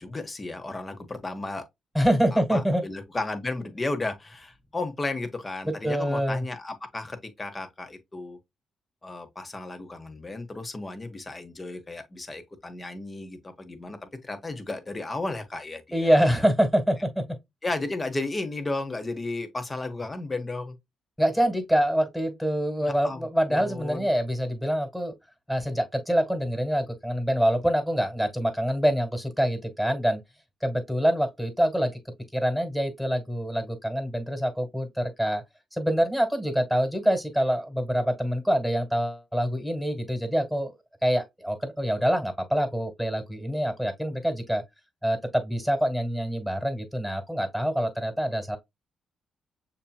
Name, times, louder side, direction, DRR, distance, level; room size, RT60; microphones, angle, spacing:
voice 1, 0.0-1.6 2.3-8.4 9.0-16.2 17.6-20.8 22.9-24.1, left 2 dB, 30° left, 1.3 m, -34 dB
voice 2, 1.9-2.8 5.7-6.5 15.9-17.4 21.2-25.1 25.5-30.2 30.6-31.9 32.3-35.4 35.7-40.7 41.0-44.6 45.0-48.6, equal, ahead, 1.8 m, -25 dB
6.6 x 2.9 x 2.3 m
hypercardioid pair, 50°, 0 cm